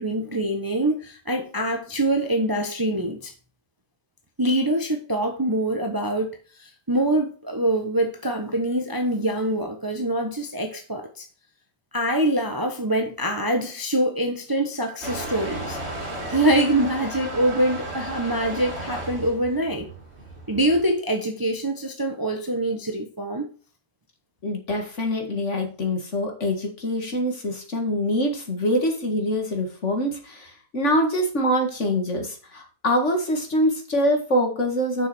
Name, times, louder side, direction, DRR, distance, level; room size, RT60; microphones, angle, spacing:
voice 1, 0.0-3.3 4.4-6.3 6.6-11.2 11.9-15.8 16.3-19.9 20.5-23.5, right 1 dB, 15° right, 1.0 m, -24 dB
Motor vehicle (road) / Engine starting / Accelerating revving vroom, 15.0-20.9, right 1 dB, 40° right, 2.7 m, -34 dB
voice 2, 24.4-35.1, equal, 45° left, 2.2 m, -24 dB
7.0 x 6.2 x 6.2 m
omnidirectional pair, 1.7 m